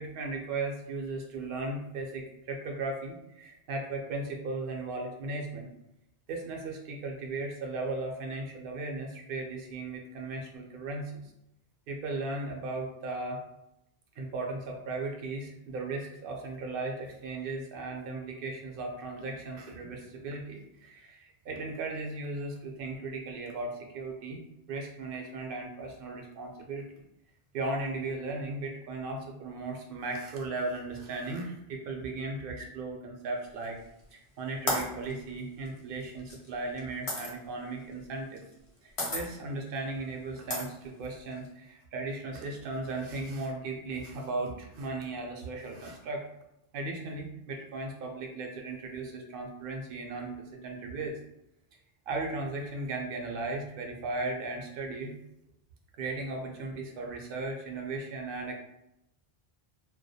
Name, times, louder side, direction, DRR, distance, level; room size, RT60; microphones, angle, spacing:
voice 1, 0.0-5.7 6.3-11.3 11.9-13.4 14.2-24.4 24.7-26.9 27.5-33.8 34.1-38.4 38.8-46.3 46.7-51.2 52.1-55.1 56.0-58.6, right 3 dB, 65° right, 1 dB, 0.7 m, -36 dB
sound 1, 33.6-34.1 34.7-37.3 38.4-38.7 39.0-39.2 39.8-39.9 40.5-41.5, left 1 dB, 40° left, 0.5 m, -33 dB
2.2 x 2.1 x 2.7 m, 0.85 s
omnidirectional pair, 1.1 m